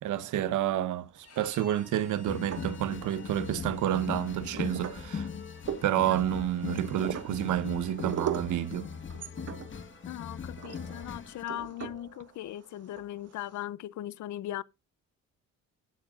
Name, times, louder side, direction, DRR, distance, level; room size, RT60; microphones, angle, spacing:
voice 1, 0.0-5.3 5.8-8.9, right 12 dB, 80° right, 1.0 m, -29 dB
Bowed string instrument, 1.2-8.0, left 5 dB, 55° left, 4.0 m, -58 dB
sound 1, 1.2-1.8 2.3-3.2 3.7-13.6, right 8 dB, 55° right, 1.7 m, -40 dB
sound 2, 2.3-11.4, left 6 dB, 40° left, 1.5 m, -40 dB
voice 2, 10.1-14.6, left 13 dB, 70° left, 0.6 m, -39 dB
16.5 x 7.2 x 2.5 m
cardioid pair, 90°, 30 cm